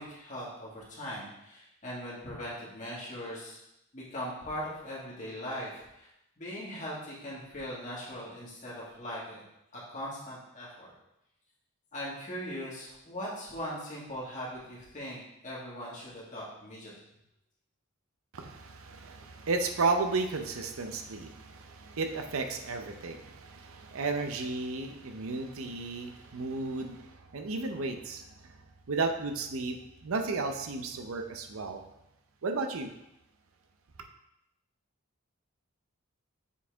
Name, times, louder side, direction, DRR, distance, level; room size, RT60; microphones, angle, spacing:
voice 1, 0.0-3.6 3.9-6.1 6.4-9.4 9.7-10.9 11.9-16.9, equal, 35° left, -6 dB, 1.9 m, -40 dB
voice 2, 18.3-28.6 28.9-31.8 32.4-32.9, right 3 dB, 80° right, 6 dB, 0.6 m, -33 dB
7.1 x 4.4 x 3.5 m, 0.85 s
head